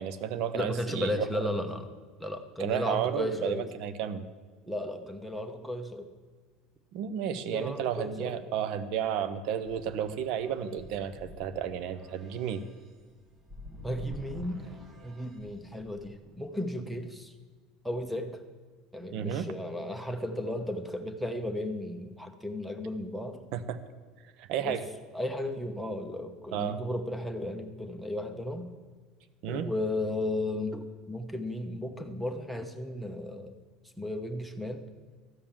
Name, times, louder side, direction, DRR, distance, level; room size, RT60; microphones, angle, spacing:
voice 1, 0.0-1.3 2.6-4.2 6.9-12.6 19.1-19.5 23.5-23.8 24.4-24.8 26.5-26.8 29.4-29.7, right 9 dB, 65° right, 12 dB, 0.8 m, -32 dB
voice 2, 0.5-1.9 2.2-3.7 4.7-6.1 7.4-8.4 13.8-14.7 15.0-17.3 17.8-18.4 18.9-23.4 24.6-24.8 25.1-28.7 29.5-33.6 34.0-34.8, left 1 dB, ahead, 8 dB, 1.0 m, -34 dB
sound 1, 9.6-16.4, left 2 dB, 30° right, 1.5 m, -48 dB
13.0 x 5.2 x 7.3 m, 1.4 s
supercardioid pair, 120°, 0 cm